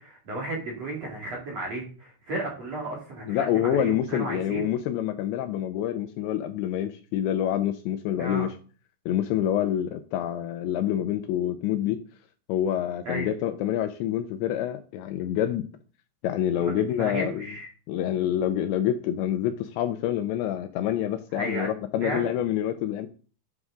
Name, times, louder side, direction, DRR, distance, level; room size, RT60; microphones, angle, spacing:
voice 1, 0.0-4.7 8.2-8.5 13.0-13.3 16.6-17.7 21.3-21.7 22.0-22.3, right 1 dB, 45° right, -3 dB, 2.5 m, -34 dB
voice 2, 3.3-8.5 9.1-12.0 12.5-15.6 16.2-17.4 17.9-23.1, left 11 dB, 80° left, 8 dB, 2.7 m, -27 dB
11.0 x 6.3 x 3.7 m, 0.40 s
omnidirectional pair, 5.5 m